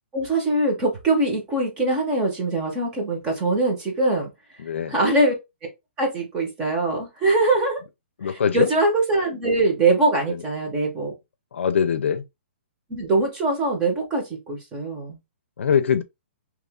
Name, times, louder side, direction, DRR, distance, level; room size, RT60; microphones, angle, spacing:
voice 1, 0.1-4.3 4.9-5.3 6.0-7.8 8.2-11.1 12.9-15.2, right 2 dB, 15° right, 0.8 m, -22 dB
voice 2, 4.6-4.9 8.2-8.7 11.5-12.2 15.6-16.0, left 7 dB, 90° left, 0.5 m, -22 dB
2.9 x 2.4 x 3.5 m
hypercardioid pair, 175°, 6 cm